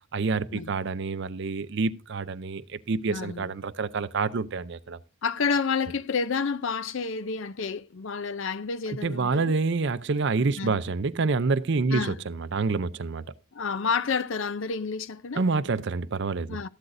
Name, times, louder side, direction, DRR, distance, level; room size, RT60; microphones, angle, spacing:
voice 1, 0.1-5.0 8.9-13.2 15.3-16.6, right 4 dB, 55° right, 0.5 m, -27 dB
voice 2, 3.1-3.5 5.2-9.5 10.6-10.8 11.9-12.2 13.5-15.4 16.5-16.7, left 5 dB, 60° left, 0.5 m, -29 dB
14.0 x 12.0 x 2.6 m
head